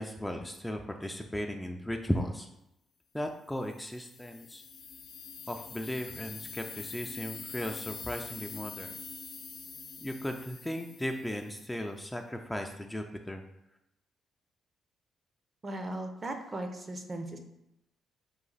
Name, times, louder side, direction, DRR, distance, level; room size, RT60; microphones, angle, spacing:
voice 1, 0.0-2.5 3.1-4.6 5.5-9.0 10.0-13.4, left 1 dB, 10° left, 3 dB, 0.4 m, -36 dB
sound 1, 3.6-11.6, left 5 dB, 70° left, 0.6 m, -45 dB
voice 2, 15.6-17.4, right 1 dB, 35° right, 5 dB, 0.6 m, -37 dB
4.1 x 2.6 x 3.9 m, 0.85 s
cardioid pair, 80°, 0 cm